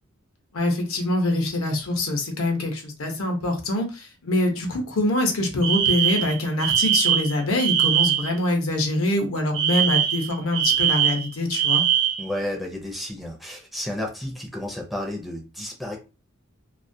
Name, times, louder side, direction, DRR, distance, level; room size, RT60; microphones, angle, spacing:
voice 1, 0.5-11.8, left 1 dB, 70° left, 0.7 m, -24 dB
Alarm, 5.6-8.3 9.5-12.3, right 9 dB, 65° right, 0.7 m, -22 dB
voice 2, 12.2-16.0, left 1 dB, ahead, 0.4 m, -32 dB
2.3 x 2.1 x 2.6 m
head